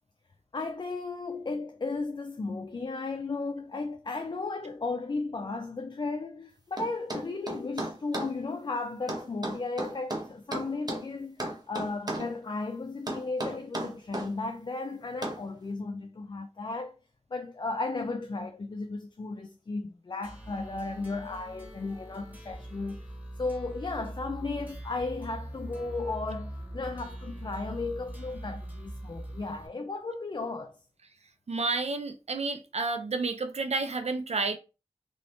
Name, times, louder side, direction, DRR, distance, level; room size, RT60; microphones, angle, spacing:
voice 1, 0.5-17.0 17.3-23.0 23.4-30.8, left 3 dB, 40° left, 0.3 m, -35 dB
sound 1, 6.8-8.3 9.1-11.1 11.4-12.3 13.1-14.3 15.2-15.4, right 1 dB, 35° right, 0.8 m, -34 dB
sound 2, 20.2-29.7, right 1 dB, 15° right, 1.3 m, -42 dB
voice 2, 31.5-34.6, right 3 dB, 70° right, 0.5 m, -30 dB
2.8 x 2.6 x 3.1 m
wide cardioid pair, 55°, 12 cm